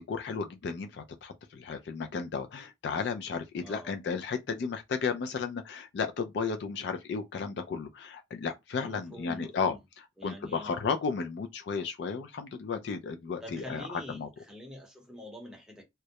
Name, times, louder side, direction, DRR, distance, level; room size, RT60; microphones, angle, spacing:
voice 1, 0.0-14.3, left 5 dB, 60° left, 0.3 m, -34 dB
voice 2, 3.6-4.0 8.8-9.8 10.2-10.8 13.4-15.8, left 1 dB, 5° right, 0.8 m, -46 dB
2.2 x 2.0 x 2.8 m
head